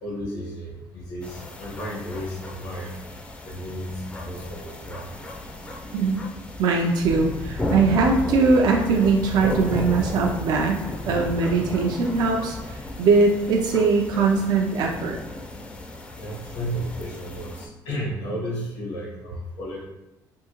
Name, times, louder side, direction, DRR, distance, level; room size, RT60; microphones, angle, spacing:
voice 1, 0.0-2.9 3.4-5.0 16.2-19.8, equal, 90° left, -4 dB, 1.5 m, -33 dB
sound 1, 1.2-17.7, left 1 dB, 15° left, 0.4 m, -35 dB
voice 2, 6.6-12.6 13.0-15.2, right 4 dB, 65° right, 1 dB, 0.5 m, -21 dB
sound 2, 7.0-13.0, left 3 dB, 70° left, 0.5 m, -37 dB
3.6 x 2.7 x 2.9 m, 0.97 s
cardioid pair, 125°, 7 cm